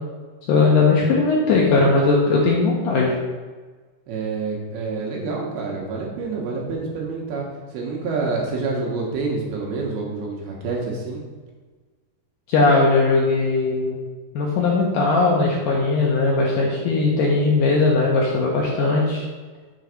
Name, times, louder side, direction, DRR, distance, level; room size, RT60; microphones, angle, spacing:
voice 1, 0.5-3.1 12.5-14.0 14.3-19.3, left 3 dB, 75° left, -3 dB, 2.0 m, -19 dB
voice 2, 4.1-7.5 7.7-11.2, right 4 dB, 75° right, -2 dB, 3.0 m, -27 dB
7.0 x 4.0 x 6.4 m, 1.4 s
omnidirectional pair, 4.7 m